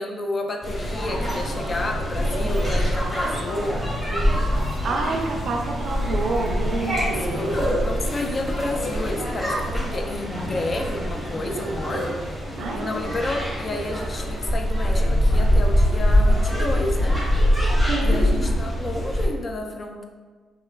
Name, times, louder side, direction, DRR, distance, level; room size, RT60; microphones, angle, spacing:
voice 1, 0.0-4.5 7.3-12.2 12.7-17.2 18.0-20.1, left 2 dB, 40° left, 3 dB, 0.4 m, -30 dB
sound 1, 0.6-19.3, equal, 10° left, 1.0 m, -24 dB
voice 2, 4.8-7.5 11.4-12.2 12.6-13.2 17.9-18.5, right 3 dB, 65° right, 1 dB, 0.4 m, -29 dB
3.1 x 2.3 x 2.3 m, 1.4 s
supercardioid pair, 55°, 0 cm